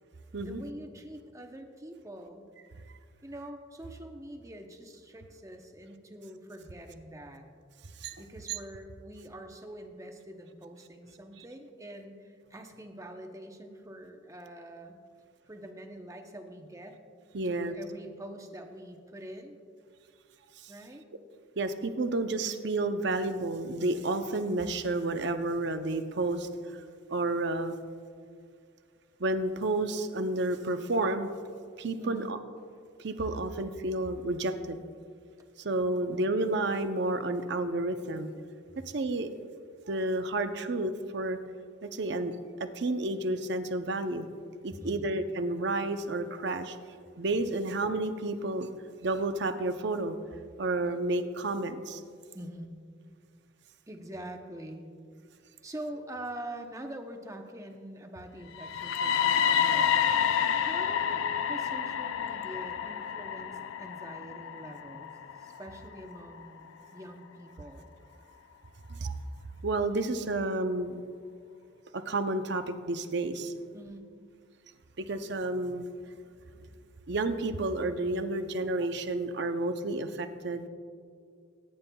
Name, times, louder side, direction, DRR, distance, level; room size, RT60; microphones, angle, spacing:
voice 1, 0.4-2.5 3.2-7.5 8.2-14.9 15.5-17.0 17.4-19.6 20.7-21.0 32.0-32.3 36.0-36.4 44.7-45.2 52.3-52.8 53.9-54.9 55.6-59.9 60.5-65.1 65.4-67.9 73.7-74.1, right 1 dB, 15° right, 4 dB, 0.8 m, -45 dB
voice 2, 17.3-17.7 20.6-20.7 21.6-26.5 27.1-27.7 29.2-31.3 31.8-32.4 33.0-34.8 35.6-38.3 38.9-39.3 39.9-41.4 41.8-42.3 42.6-44.3 44.6-46.8 47.2-48.7 49.0-50.2 50.6-52.0 59.3-59.4 68.9-69.1 69.6-71.0 71.9-73.5 75.0-75.9 77.1-80.7, right 2 dB, 60° right, 8 dB, 0.6 m, -31 dB
sound 1, 58.5-66.5, left 8 dB, 80° left, 0.4 m, -29 dB
19.5 x 9.6 x 2.3 m, 2.2 s
head